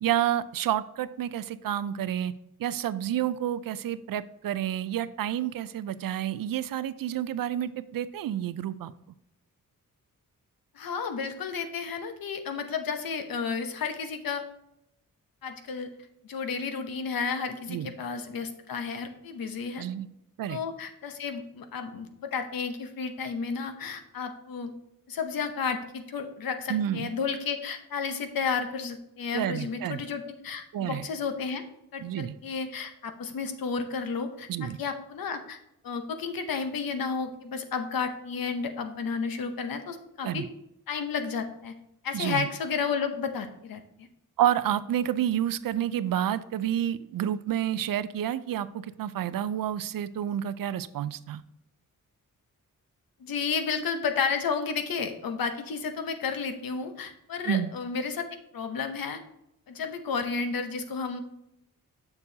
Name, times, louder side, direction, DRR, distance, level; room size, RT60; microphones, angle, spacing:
voice 1, 0.0-2.3 2.6-8.9 17.7-17.9 19.8-20.1 20.4-20.6 26.7-27.1 29.3-30.0 30.7-31.0 32.0-32.3 34.5-34.8 40.2-40.5 42.1-42.5 44.4-51.4 57.5-57.7, right 11 dB, 75° right, 15 dB, 0.5 m, -29 dB
voice 2, 10.7-14.5 15.4-15.9 16.2-19.8 20.5-24.7 25.1-31.6 31.9-35.6 35.8-40.4 40.9-41.7 42.0-44.1 53.2-58.2 58.5-59.2 59.7-61.2, left 5 dB, 80° left, 7 dB, 0.9 m, -32 dB
6.8 x 6.8 x 2.7 m, 0.79 s
cardioid pair, 85°, 34 cm